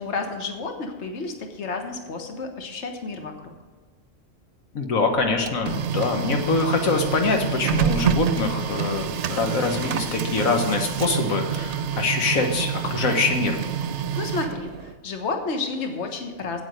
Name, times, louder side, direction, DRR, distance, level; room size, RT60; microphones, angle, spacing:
voice 1, 0.0-3.5 14.2-16.6, left 3 dB, 55° left, 4 dB, 1.5 m, -31 dB
voice 2, 4.7-13.6, left 3 dB, 80° left, 4 dB, 1.6 m, -24 dB
Printer, 5.2-14.9, right 7 dB, 65° right, 0.9 m, -27 dB
9.0 x 8.8 x 6.5 m, 1.4 s
omnidirectional pair, 1.4 m